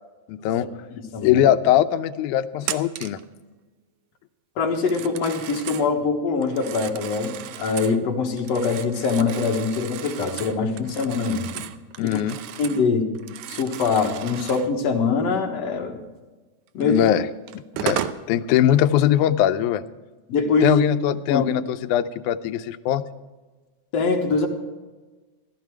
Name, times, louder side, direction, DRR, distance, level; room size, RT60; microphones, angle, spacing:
voice 1, 0.3-0.7 1.2-3.2 12.0-12.4 16.8-17.3 17.8-19.8 20.6-23.0, left 11 dB, 85° left, 10 dB, 2.0 m, -21 dB
voice 2, 1.1-1.5 4.6-11.5 12.0-12.2 12.6-13.1 13.5-16.0 16.7-17.0 20.3-20.8 21.3-21.4 23.9-24.5, left 4 dB, 60° left, 2 dB, 2.4 m, -23 dB
Telephone, 2.6-3.2 4.8-5.9 6.4-8.0 8.4-12.9 13.1-14.7 16.8-16.9 17.5-18.2, right 11 dB, 80° right, 1.9 m, -34 dB
15.0 x 12.5 x 4.6 m, 1.3 s
omnidirectional pair, 3.5 m